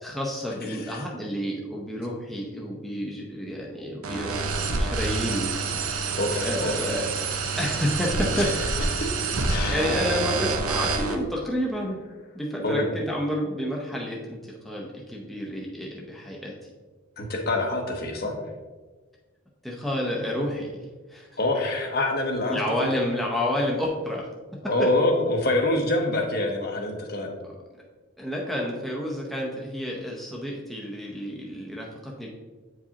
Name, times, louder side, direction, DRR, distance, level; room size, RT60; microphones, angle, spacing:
voice 1, 0.0-5.8 6.4-7.1 7.6-8.5 9.7-12.0 12.3-16.5 19.6-21.3 22.5-24.3 24.8-24.9 27.4-27.5 28.2-32.3, equal, ahead, -3 dB, 0.6 m, -30 dB
voice 2, 0.7-1.0 6.1-6.7 8.4-8.5 9.0-9.1 9.5-9.8 12.6-12.8 17.2-18.4 21.4-22.6 24.6-27.3, left 2 dB, 45° left, 2 dB, 0.9 m, -26 dB
sound 1, 4.0-11.1, right 4 dB, 90° right, 0.7 m, -27 dB
8.1 x 4.8 x 2.8 m, 1.3 s
head